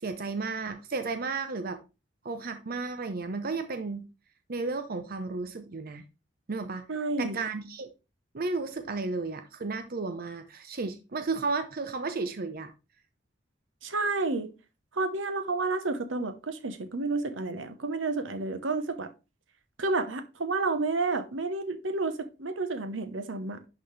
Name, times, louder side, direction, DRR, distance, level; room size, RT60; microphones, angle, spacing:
voice 1, 0.0-1.8 2.2-4.1 4.5-6.0 6.5-6.9 7.2-7.9 8.3-12.7, right 3 dB, 50° right, 0.7 m, -33 dB
voice 2, 6.9-7.4 13.8-14.5 14.9-19.1 19.8-23.6, right 3 dB, 80° right, 1.0 m, -30 dB
11.0 x 4.2 x 3.3 m
head